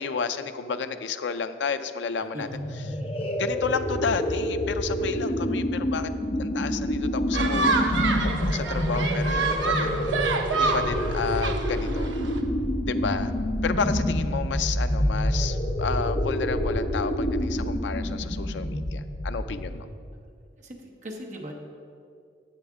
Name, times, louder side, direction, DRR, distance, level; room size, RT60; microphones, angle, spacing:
voice 1, 0.0-2.5 3.4-6.1 6.4-8.0 8.2-10.1 10.5-12.1 12.9-13.3 13.6-19.9, left 5 dB, 75° left, 10 dB, 0.4 m, -31 dB
sound 1, 2.4-19.9, equal, 30° left, 0.6 m, -27 dB
sound 2, 7.3-12.4, right 3 dB, 80° right, 0.7 m, -28 dB
voice 2, 9.3-10.4 20.6-21.5, equal, 40° right, 1 dB, 0.9 m, -40 dB
10.5 x 7.8 x 3.6 m, 2.3 s
head